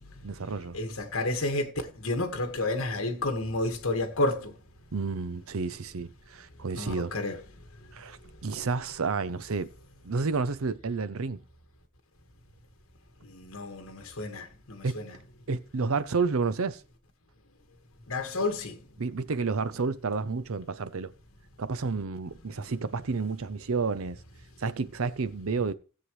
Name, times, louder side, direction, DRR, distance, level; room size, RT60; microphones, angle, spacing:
voice 1, 0.2-0.8 4.9-7.1 7.9-9.7 10.0-11.4 14.8-14.9 15.5-16.8 19.0-21.1 21.6-24.2 24.6-25.7, right 4 dB, 70° right, 0.6 m, -30 dB
voice 2, 0.7-4.5 6.8-7.4 13.2-15.2 18.1-18.8, left 2 dB, 65° left, 1.7 m, -31 dB
16.5 x 7.8 x 3.2 m
head